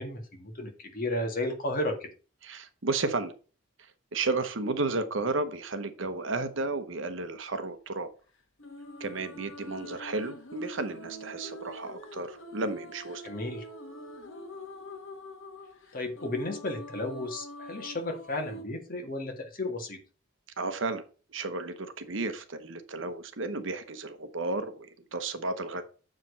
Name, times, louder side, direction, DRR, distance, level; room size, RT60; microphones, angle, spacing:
voice 1, 0.0-2.1 13.2-13.7 15.9-20.0, left 1 dB, 45° left, 3 dB, 1.9 m, -33 dB
voice 2, 2.4-3.3 3.8-8.1 9.0-13.3 20.6-21.0 21.3-25.8, right 3 dB, 65° right, 10 dB, 1.0 m, -33 dB
sound 1, 8.6-18.6, left 1 dB, 70° left, 1.4 m, -45 dB
7.4 x 5.0 x 5.5 m, 0.35 s
head